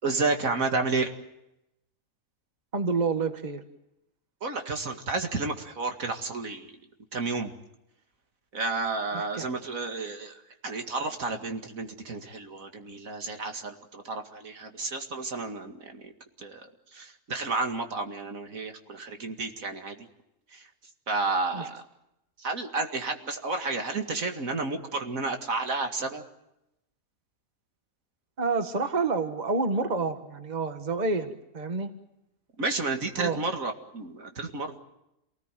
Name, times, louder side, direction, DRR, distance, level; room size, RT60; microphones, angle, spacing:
voice 1, 0.0-1.1 4.4-6.7 7.1-7.5 8.5-16.1 16.4-20.1 20.5-20.7 21.1-21.8 22.4-26.2 32.6-34.8, right 3 dB, 80° right, 5 dB, 2.6 m, -31 dB
voice 2, 2.7-3.6 9.1-9.5 21.5-21.7 28.4-31.9 33.2-33.4, right 4 dB, 30° right, 8 dB, 1.6 m, -28 dB
28.0 x 19.0 x 9.1 m, 0.87 s
omnidirectional pair, 1.4 m